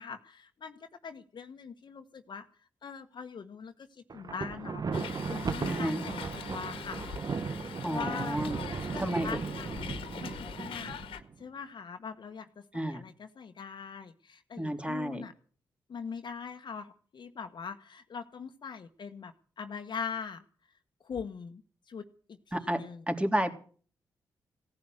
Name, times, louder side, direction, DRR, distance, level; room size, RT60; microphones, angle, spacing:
voice 1, 0.0-2.4 2.8-7.0 7.8-8.4 8.9-10.3 10.6-10.9 11.4-15.3 15.9-20.4 21.0-21.6 21.9-22.0 22.6-23.0, left 6 dB, 55° left, 5 dB, 1.4 m, -42 dB
Thunder, 4.1-11.3, right 5 dB, 45° right, 1.4 m, -36 dB
Hiss, 4.9-11.2, left 8 dB, 75° left, 1.8 m, -43 dB
voice 2, 5.7-6.0 7.8-8.6 9.0-9.3 12.7-13.0 14.6-15.2 22.5-23.5, right 1 dB, 10° right, 6 dB, 3.4 m, -31 dB
17.0 x 10.5 x 7.9 m, 0.44 s
hypercardioid pair, 40°, 9 cm